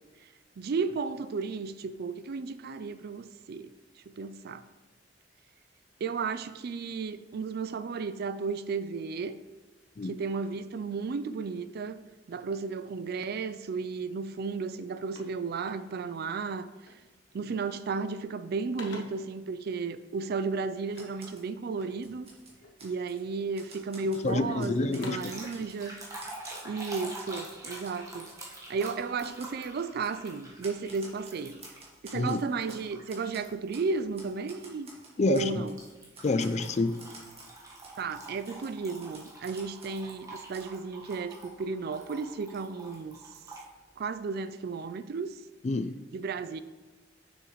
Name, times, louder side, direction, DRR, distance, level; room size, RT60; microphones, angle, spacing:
voice 1, 0.6-3.7 4.1-4.6 6.0-9.4 10.1-12.0 12.3-16.7 17.3-22.3 22.8-25.9 26.6-31.6 32.0-34.9 35.3-35.7 38.0-43.2 44.0-45.4 46.1-46.6, right 4 dB, 55° right, 0.4 m, -34 dB
sound 1, 14.2-14.4 14.7-16.2 16.8-17.2 17.5-18.0 18.3-19.4 20.9-22.1 22.6-23.2 23.7-24.4 24.8-25.5, left 3 dB, 75° left, 1.3 m, -49 dB
Typewriter, 20.9-21.5 21.9-23.2 23.5-25.1 25.5-25.8 26.2-27.5 27.8-28.0 28.3-28.4 28.8-29.0 29.2-29.5 30.0-30.2 30.6-32.8 33.1-33.9 34.1-35.8 36.1-37.5 37.8-38.0 38.4-40.1 40.5-40.6, right 2 dB, 35° right, 1.7 m, -51 dB
voice 2, 24.2-25.7 32.1-32.4 35.2-35.7 36.2-37.0 45.6-46.0, left 2 dB, 40° left, 0.4 m, -28 dB
sound 2, 25.0-32.0 32.6-33.5 33.9-34.2 35.8-43.7, right 2 dB, 20° right, 1.4 m, -46 dB
7.2 x 6.4 x 3.1 m
head